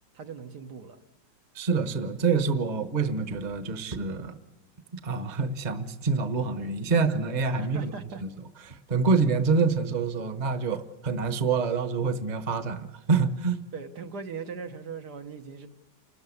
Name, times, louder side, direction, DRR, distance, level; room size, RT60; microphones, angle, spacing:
voice 1, 0.1-1.0 7.6-8.2 13.7-15.7, right 5 dB, 70° right, 6 dB, 1.7 m, -39 dB
voice 2, 1.5-4.4 4.9-7.9 8.2-8.3 8.7-13.6, right 4 dB, 30° right, 11 dB, 1.1 m, -26 dB
29.5 x 13.5 x 9.7 m, 1.1 s
omnidirectional pair, 1.9 m